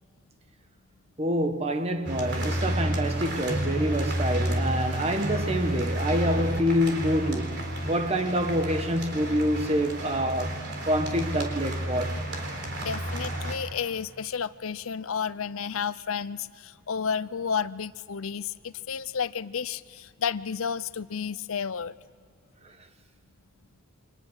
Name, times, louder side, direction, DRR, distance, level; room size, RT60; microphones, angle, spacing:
voice 1, 1.2-12.2, equal, 30° right, 1.4 m, -27 dB
sound 1, 2.0-13.5, right 1 dB, 55° right, 3.9 m, -30 dB
voice 2, 12.8-22.0, left 6 dB, 85° left, 0.6 m, -31 dB
29.0 x 25.0 x 6.5 m
head